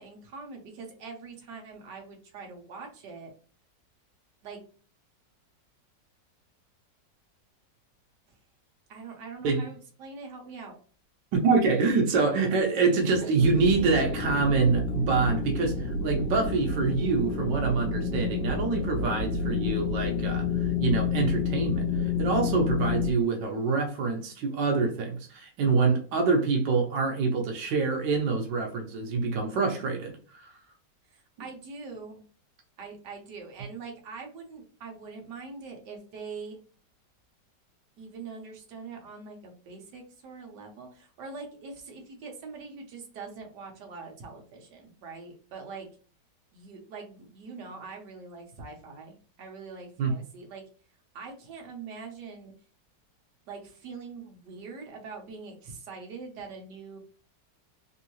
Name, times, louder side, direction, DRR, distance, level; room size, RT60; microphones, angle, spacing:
voice 1, 0.0-3.3 4.4-4.6 8.9-10.8 13.0-13.3 31.1-32.2 32.8-36.6 38.0-45.9 46.5-50.6 51.1-52.5 53.5-57.0, right 4 dB, 70° right, 1.5 m, -43 dB
voice 2, 11.3-30.5 50.0-50.1, right 4 dB, 90° right, 1.4 m, -26 dB
sound 1, 13.4-23.1, left 5 dB, 80° left, 1.2 m, -29 dB
3.5 x 2.7 x 2.9 m
omnidirectional pair, 1.9 m